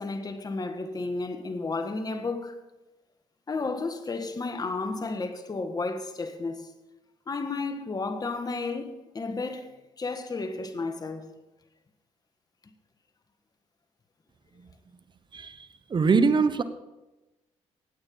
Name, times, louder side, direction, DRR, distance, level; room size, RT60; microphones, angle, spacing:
voice 1, 0.0-2.6 3.5-6.7 7.3-9.7 10.0-11.3, left 3 dB, 30° left, 1.6 m, -32 dB
voice 2, 15.3-16.6, right 4 dB, 40° right, 1.1 m, -23 dB
16.5 x 8.9 x 5.6 m
cardioid pair, 75°, 13 cm